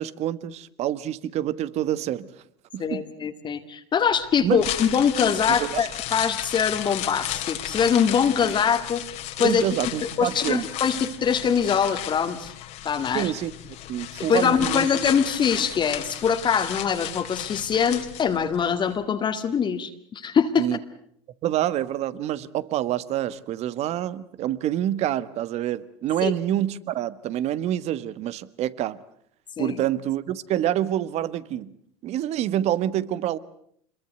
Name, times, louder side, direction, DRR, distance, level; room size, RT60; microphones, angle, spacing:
voice 1, 0.0-2.3 2.7-3.0 4.4-4.6 5.5-5.9 9.4-10.7 13.1-14.9 20.6-20.8 21.4-29.0 29.6-31.7 32.0-33.4, right 12 dB, 50° right, 16 dB, 1.4 m, -27 dB
voice 2, 2.8-9.0 9.4-9.7 10.0-12.5 12.8-13.3 14.2-20.7 26.2-26.3 29.6-29.8, left 7 dB, 35° left, 6 dB, 2.0 m, -23 dB
sound 1, 4.4-18.6 18.9-19.0, left 13 dB, 60° left, 2.7 m, -34 dB
26.0 x 22.0 x 8.0 m, 0.67 s
hypercardioid pair, 85°, 14 cm